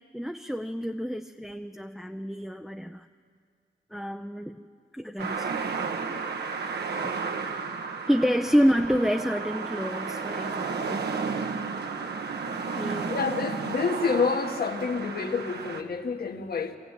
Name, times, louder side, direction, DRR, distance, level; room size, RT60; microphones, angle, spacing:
voice 1, 0.1-3.1 3.9-4.6 4.9-5.5 8.1-11.1 12.7-13.1, equal, ahead, 4 dB, 0.6 m, -28 dB
sound 1, 5.2-15.8, right 5 dB, 70° right, 1.2 m, -33 dB
voice 2, 13.1-16.8, left 5 dB, 60° left, 4 dB, 1.8 m, -28 dB
23.5 x 15.0 x 9.0 m, 2.2 s
cardioid pair, 75°, 18 cm